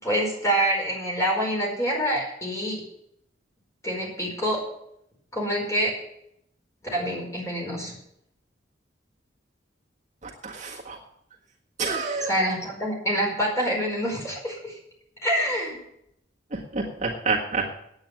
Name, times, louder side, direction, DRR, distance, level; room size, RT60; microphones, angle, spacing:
voice 1, 0.0-2.8 3.8-4.6 5.3-5.9 6.9-7.9 12.3-14.7 15.2-15.8, equal, 15° left, -2 dB, 4.7 m, -26 dB
voice 2, 10.2-11.0 11.8-12.3 16.5-17.7, right 4 dB, 40° right, -2 dB, 1.6 m, -28 dB
9.5 x 8.8 x 7.8 m, 0.75 s
head